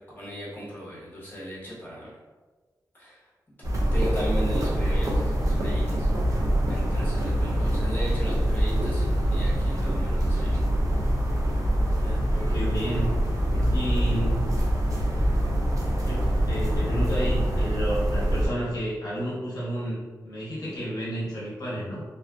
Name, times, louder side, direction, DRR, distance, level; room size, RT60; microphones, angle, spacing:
voice 1, 0.1-2.1 2.9-3.2 3.9-6.1 6.7-10.6, equal, 25° left, -7 dB, 0.9 m, -36 dB
sound 1, 3.6-18.5, equal, 55° right, 0.5 m, -24 dB
voice 2, 6.9-7.6 12.0-13.2 13.4-14.5 16.0-22.0, right 1 dB, 65° left, -7 dB, 0.7 m, -31 dB
2.4 x 2.4 x 2.2 m, 1.4 s
wide cardioid pair, 125°, 7 cm